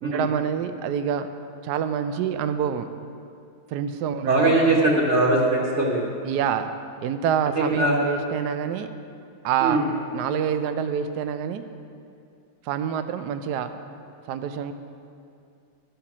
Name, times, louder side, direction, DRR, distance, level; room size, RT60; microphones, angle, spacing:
voice 1, 0.0-1.3 1.6-2.9 3.7-4.6 6.2-6.7 7.0-8.9 9.4-9.8 10.1-11.6 12.6-13.7 14.3-14.7, right 8 dB, 75° right, 9 dB, 0.9 m, -26 dB
voice 2, 4.3-6.1 7.6-8.0 9.6-9.8, right 2 dB, 40° right, -4 dB, 1.3 m, -21 dB
12.5 x 5.8 x 7.2 m, 2.5 s
omnidirectional pair, 2.2 m